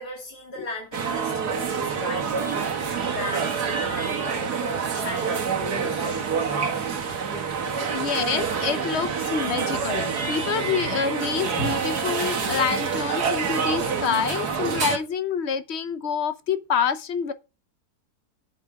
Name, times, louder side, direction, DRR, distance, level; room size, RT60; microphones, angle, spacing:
voice 1, 0.0-7.1 7.6-8.0 11.5-11.9, left 1 dB, 85° left, 3.3 m, -37 dB
sound 1, 0.9-15.0, right 6 dB, 80° right, 2.0 m, -27 dB
voice 2, 7.9-17.3, left 7 dB, 50° left, 1.0 m, -27 dB
8.3 x 8.2 x 4.8 m
omnidirectional pair, 1.7 m